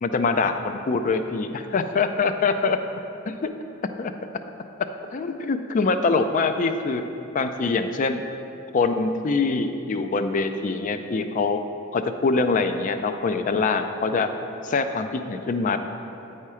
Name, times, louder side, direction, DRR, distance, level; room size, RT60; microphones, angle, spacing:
voice 1, 0.0-2.8 3.3-3.4 4.0-4.1 5.1-7.0 7.3-8.2 8.7-11.6 11.9-14.3 14.6-15.8, left 4 dB, 40° left, 8 dB, 0.4 m, -24 dB
9.3 x 4.3 x 4.8 m, 2.9 s
head